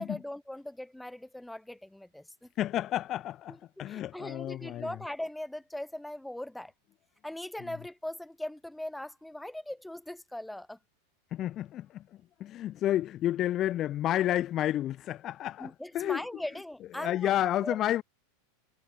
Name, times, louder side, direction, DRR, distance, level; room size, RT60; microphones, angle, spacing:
voice 1, 0.0-2.5 3.5-6.7 7.2-10.8 15.6-17.3 17.6-17.8, left 1 dB, 5° left, 4.8 m, -40 dB
voice 2, 2.6-5.0 11.3-12.0 12.4-16.2 17.0-18.0, left 12 dB, 40° left, 2.6 m, -30 dB
hypercardioid pair, 95°, 0 cm